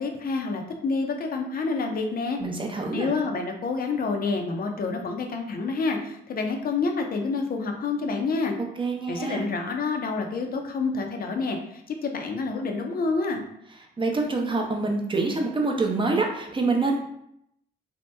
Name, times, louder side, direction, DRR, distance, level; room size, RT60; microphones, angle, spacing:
voice 1, 0.0-2.4 2.9-8.5 9.1-13.4, left 4 dB, 45° left, 3 dB, 0.6 m, -28 dB
voice 2, 2.4-3.1 8.8-9.5 14.0-17.0, right 3 dB, 25° right, 2 dB, 0.6 m, -26 dB
2.8 x 2.1 x 3.3 m, 0.76 s
cardioid pair, 75°, 21 cm